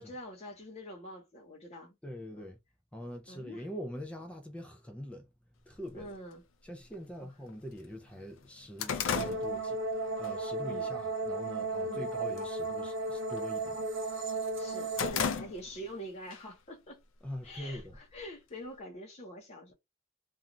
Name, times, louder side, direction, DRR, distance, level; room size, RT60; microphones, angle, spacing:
voice 1, 0.0-2.0 2.3-2.5 3.3-3.7 5.9-6.4 10.6-11.0 11.9-12.1 14.6-17.0 17.4-19.7, equal, 35° left, 0.7 m, -45 dB
voice 2, 2.0-2.6 2.9-5.3 5.7-6.1 6.6-13.9 17.2-18.0, equal, 5° left, 0.4 m, -44 dB
sound 1, 5.9-6.0 6.9-7.0 7.5-7.6 7.9-10.3 10.7-11.0 11.5-12.0 12.2-12.6 12.9-14.1 14.5-16.0 16.3-16.4 17.3-18.2, left 6 dB, 75° left, 0.4 m, -35 dB
sound 2, 9.1-15.1, right 3 dB, 70° right, 0.8 m, -34 dB
2.5 x 2.3 x 2.9 m
head